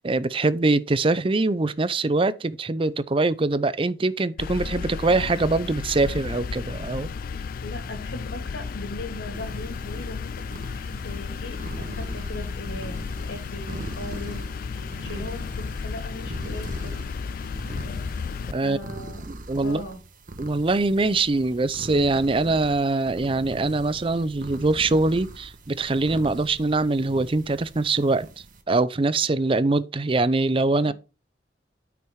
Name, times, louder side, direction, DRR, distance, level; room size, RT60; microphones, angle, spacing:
voice 1, 0.0-7.1 18.5-18.8 19.3-19.8 20.4-28.3 28.7-30.9, right 3 dB, 30° right, 0.5 m, -23 dB
sound 1, 4.4-18.5, left 5 dB, 55° left, 0.3 m, -33 dB
voice 2, 7.3-14.4 15.0-17.0 18.5-19.3 19.6-20.0 30.8-30.9, left 1 dB, 85° left, 2.9 m, -39 dB
sound 2, 9.3-28.6, right 1 dB, 50° right, 1.3 m, -41 dB
9.3 x 6.0 x 4.6 m
head